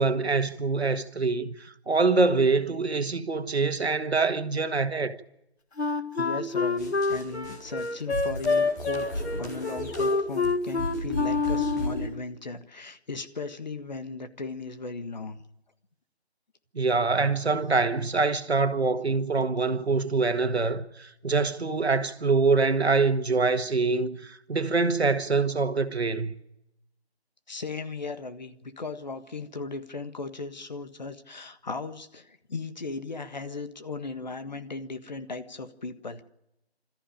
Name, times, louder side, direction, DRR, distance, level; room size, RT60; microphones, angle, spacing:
voice 1, 0.0-5.2 16.8-26.3, right 4 dB, 75° right, 1.8 m, -25 dB
Wind instrument woodwind instrument, 5.8-12.1, left 4 dB, 80° left, 2.0 m, -27 dB
voice 2, 6.1-15.4 27.5-36.2, left 3 dB, 40° left, 1.5 m, -37 dB
sound 1, 6.8-12.1, left 1 dB, 15° left, 2.6 m, -35 dB
27.0 x 14.0 x 8.8 m
figure-of-eight pair, 170°, 32 cm